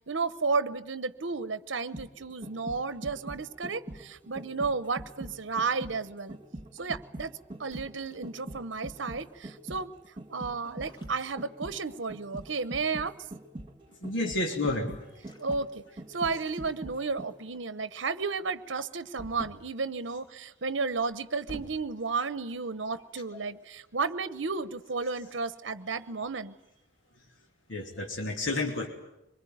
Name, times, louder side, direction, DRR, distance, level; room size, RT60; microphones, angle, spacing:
voice 1, 0.1-6.4 6.7-7.3 7.6-9.9 10.3-13.1 15.4-15.8 16.1-26.5, right 4 dB, 70° right, 14 dB, 0.9 m, -33 dB
sound 1, 1.7-17.6 17.9-18.0, right 1 dB, 25° right, 2.3 m, -43 dB
sound 2, 3.2-4.0 5.2-5.5 7.6-9.2 10.6-12.0 12.3-12.7 15.1-15.8 16.1-16.7 19.2-19.8 20.9-21.9, equal, 25° left, 2.0 m, -50 dB
voice 2, 14.0-14.9 27.7-28.9, left 2 dB, 75° left, 1 dB, 3.0 m, -30 dB
24.5 x 21.5 x 9.3 m, 0.89 s
head